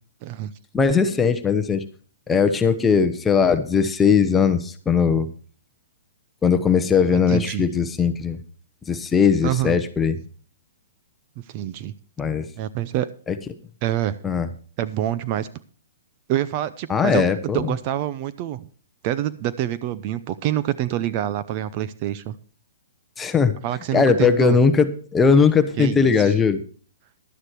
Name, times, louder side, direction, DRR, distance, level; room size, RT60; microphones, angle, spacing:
voice 1, 0.2-0.5 7.1-7.6 9.4-9.8 11.5-11.9 12.6-13.1 13.8-14.2 14.8-15.5 16.3-17.3 17.5-18.7 19.0-22.4 23.6-24.6 25.8-26.3, right 12 dB, 35° right, 14 dB, 0.6 m, -26 dB
voice 2, 0.7-1.8 2.3-5.3 6.4-8.4 8.9-10.2 12.2-12.5 14.2-14.5 16.9-17.7 23.2-23.6 23.9-26.6, left 6 dB, 10° left, 9 dB, 0.9 m, -19 dB
11.5 x 9.6 x 4.6 m, 0.41 s
hypercardioid pair, 145°, 0 cm